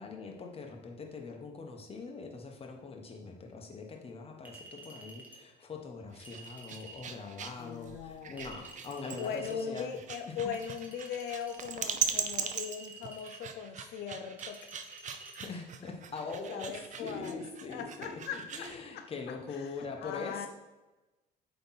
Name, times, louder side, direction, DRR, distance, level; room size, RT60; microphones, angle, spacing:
voice 1, 0.0-10.0 10.3-10.4 15.4-16.7 17.0-20.5, left 4 dB, 35° left, 2 dB, 1.2 m, -42 dB
Chink clink, 4.5-5.4 6.2-7.1 8.4-9.6 10.5-11.7 12.4-13.4 14.4-15.5, right 2 dB, 10° right, 1.4 m, -51 dB
sound 1, 6.1-18.8, right 7 dB, 45° right, 0.6 m, -40 dB
voice 2, 7.6-8.5 9.2-14.6 16.5-19.0 19.5-20.5, left 7 dB, 80° left, 5 dB, 0.5 m, -40 dB
8.4 x 3.4 x 4.0 m, 1.1 s
cardioid pair, 110°, 17 cm